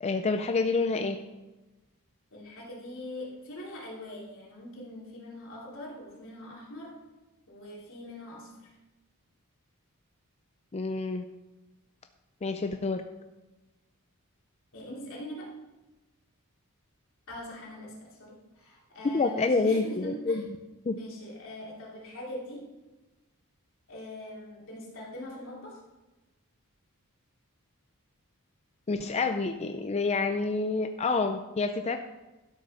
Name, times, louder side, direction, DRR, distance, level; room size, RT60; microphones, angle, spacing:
voice 1, 0.0-1.2 10.7-11.3 12.4-13.0 19.1-20.4 20.9-21.0 28.9-32.0, left 3 dB, 30° left, 7 dB, 0.4 m, -28 dB
voice 2, 2.3-7.0 7.5-8.7 14.7-15.6 17.3-20.4 21.0-22.7 23.9-25.8, left 1 dB, 60° left, -4 dB, 3.1 m, -42 dB
12.5 x 6.3 x 5.6 m, 1.1 s
head